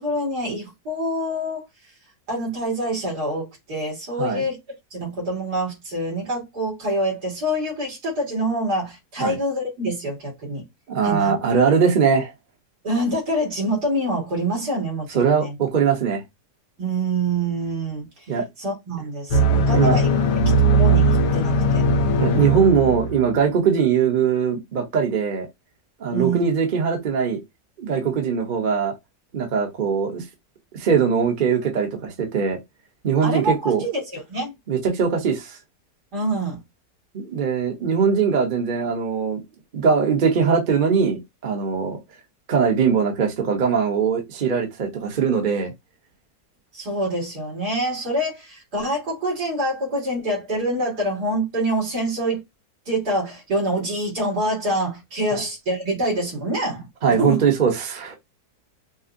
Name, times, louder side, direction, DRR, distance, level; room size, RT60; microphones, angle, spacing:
voice 1, 0.0-1.6 2.3-4.6 4.9-10.6 11.0-11.3 12.8-15.5 16.8-18.1 18.6-20.1 20.7-21.8 26.1-26.5 33.2-34.5 36.1-36.6 46.7-52.4 52.9-57.4, right 1 dB, 80° right, 2.7 m, -26 dB
voice 2, 10.9-12.3 15.1-16.2 18.3-18.5 19.7-20.0 22.2-25.5 26.0-27.4 27.8-28.9 29.3-30.2 30.7-32.6 33.0-33.8 34.7-35.6 37.1-39.4 39.7-42.0 42.5-45.7 55.3-55.4 57.0-58.2, right 6 dB, 40° right, 0.8 m, -21 dB
sound 1, 19.3-23.4, right 1 dB, 90° left, 1.3 m, -19 dB
5.1 x 2.0 x 2.5 m
omnidirectional pair, 1.7 m